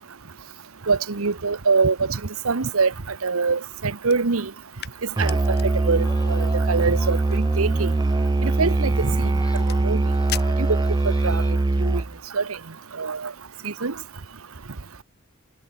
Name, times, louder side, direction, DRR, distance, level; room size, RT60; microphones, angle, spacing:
voice 1, 0.9-2.2 2.4-4.5 5.2-7.9 8.4-9.3 9.8-10.0 10.6-10.8 11.2-11.4 11.8-12.0 12.3-12.6 13.0-13.3 13.6-13.9, right 4 dB, 85° right, 1.1 m, -24 dB
sound 1, 4.0-11.4, left 11 dB, 50° left, 2.0 m, -42 dB
Musical instrument, 5.2-12.2, right 2 dB, 20° right, 0.3 m, -22 dB
sound 2, 5.9-11.5, left 3 dB, 20° left, 4.7 m, -46 dB
head